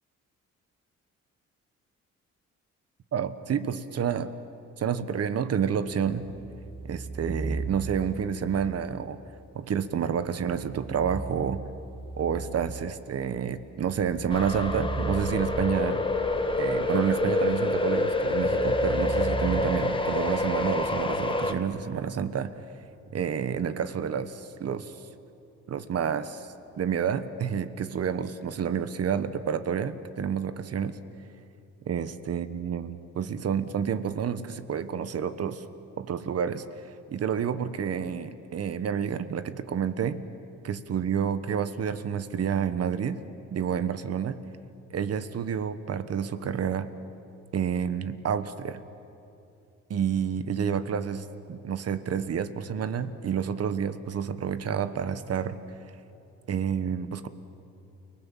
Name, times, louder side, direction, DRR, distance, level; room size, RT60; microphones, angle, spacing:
voice 1, 3.1-4.3 4.8-6.3 6.8-9.2 9.5-11.6 12.2-16.0 16.6-22.5 23.1-24.9 25.7-26.5 26.8-31.0 31.8-35.6 36.0-36.6 37.1-40.2 40.6-43.2 43.5-44.4 44.9-46.9 47.5-48.8 49.9-55.6 56.5-57.3, right 7 dB, 55° right, 13 dB, 1.3 m, -29 dB
sound 1, 6.0-8.3 10.3-12.9 13.6-16.1 18.1-19.6, right 3 dB, 15° right, 2.3 m, -36 dB
sound 2, 14.3-21.5, left 2 dB, 15° left, 1.6 m, -27 dB
29.5 x 19.5 x 7.3 m, 2.8 s
cardioid pair, 90°, 30 cm